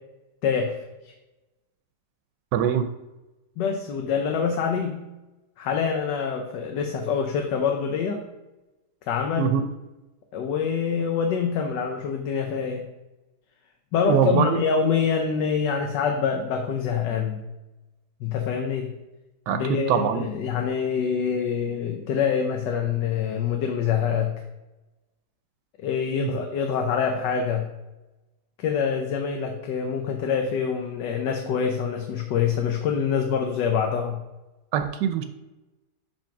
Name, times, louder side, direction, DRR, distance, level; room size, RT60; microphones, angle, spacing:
voice 1, 0.4-0.8 1.0-1.1 3.6-5.1 5.6-8.2 9.1-9.5 10.3-12.8 13.9-17.4 18.2-19.0 19.5-24.3 25.8-27.7 28.6-34.2, left 6 dB, 90° left, 4 dB, 1.4 m, -25 dB
voice 2, 2.5-2.9 9.4-9.7 14.1-14.6 19.5-19.6 19.9-20.3 26.2-26.3 34.7-35.2, right 8 dB, 90° right, 8 dB, 1.2 m, -22 dB
5.4 x 5.1 x 5.8 m, 1.0 s
omnidirectional pair, 1.8 m